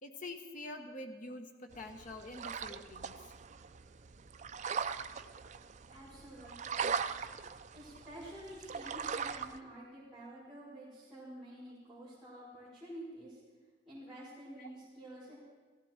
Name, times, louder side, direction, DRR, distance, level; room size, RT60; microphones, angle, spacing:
voice 1, 0.0-3.1 14.6-14.7, left 2 dB, 45° left, 4 dB, 1.4 m, -46 dB
sound 1, 1.7-9.6, right 6 dB, 40° right, 0.5 m, -40 dB
voice 2, 5.9-6.9 7.7-13.4 13.8-15.4, right 1 dB, ahead, -12 dB, 4.9 m, -49 dB
17.5 x 15.5 x 4.5 m, 1.4 s
head